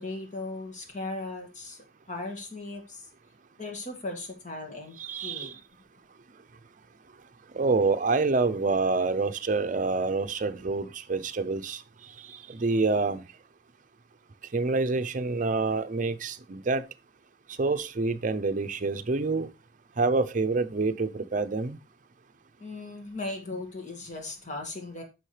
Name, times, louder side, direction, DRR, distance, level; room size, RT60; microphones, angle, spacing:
voice 1, 0.0-3.0 3.6-5.6 22.6-25.0, left 2 dB, 40° left, 1.9 m, -38 dB
voice 2, 5.0-5.5 7.5-11.8 12.5-13.2 14.5-16.8 17.6-19.5 20.0-21.8, right 3 dB, 45° right, 0.6 m, -27 dB
10.0 x 6.4 x 3.3 m
head